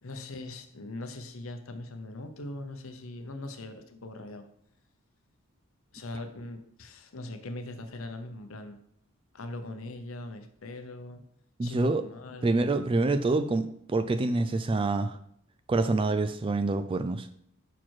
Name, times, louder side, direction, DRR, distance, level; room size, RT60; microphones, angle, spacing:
voice 1, 0.0-4.5 5.9-8.8 9.3-11.2 11.6-12.6, left 2 dB, 70° left, 7 dB, 0.8 m, -41 dB
voice 2, 11.6-12.0 12.4-15.2 15.7-17.3, right 2 dB, 25° right, 11 dB, 0.3 m, -26 dB
5.9 x 4.6 x 4.5 m, 0.68 s
head